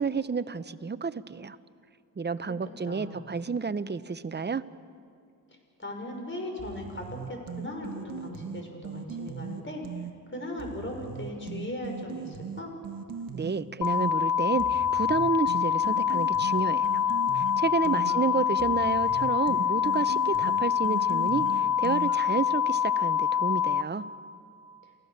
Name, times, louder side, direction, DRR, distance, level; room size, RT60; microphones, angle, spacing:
voice 1, 0.0-1.6 2.2-4.6 13.3-17.0 17.3-24.0, right 5 dB, 25° right, 13 dB, 0.9 m, -30 dB
voice 2, 2.8-3.2 5.8-9.8 10.3-12.7 17.9-18.4, left 1 dB, 30° left, 3 dB, 6.1 m, -38 dB
sound 1, 6.6-10.1 10.6-14.1 14.6-22.4, right 7 dB, 60° right, 1.5 m, -39 dB
sound 2, 13.8-23.8, left 8 dB, 75° left, 1.2 m, -26 dB
29.0 x 16.5 x 6.7 m, 2.3 s
supercardioid pair, 60°, 39 cm